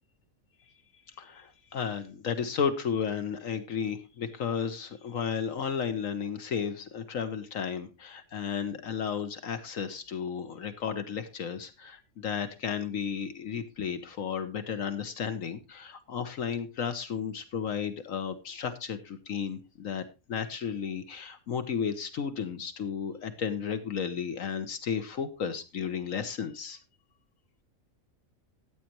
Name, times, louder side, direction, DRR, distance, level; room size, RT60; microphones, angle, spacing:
voice 1, 1.2-26.8, left 7 dB, 70° left, 10 dB, 1.4 m, -33 dB
14.0 x 9.1 x 2.9 m, 0.26 s
omnidirectional pair, 1.5 m